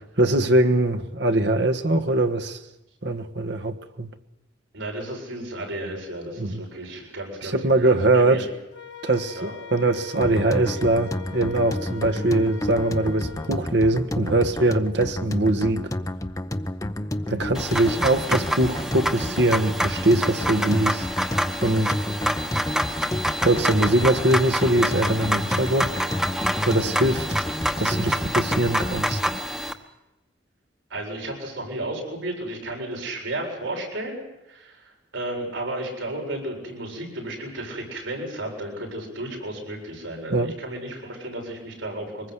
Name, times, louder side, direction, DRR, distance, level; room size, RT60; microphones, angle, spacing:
voice 1, 0.2-2.6 3.0-4.1 6.4-6.6 7.4-8.5 9.0-15.9 17.3-21.1 21.6-22.0 23.4-26.0 26.6-27.4 27.8-29.2 40.3-40.5, right 2 dB, 60° right, 1.5 m, -22 dB
voice 2, 4.7-8.4 9.4-9.5 30.9-34.2 34.5-42.3, right 1 dB, 85° right, 7.7 m, -33 dB
Wind instrument woodwind instrument, 8.7-13.6, left 7 dB, 65° left, 1.8 m, -42 dB
sound 1, 10.2-29.4, left 1 dB, 15° left, 0.7 m, -31 dB
sound 2, 17.5-29.7, equal, 5° right, 1.2 m, -27 dB
24.5 x 20.5 x 8.3 m
head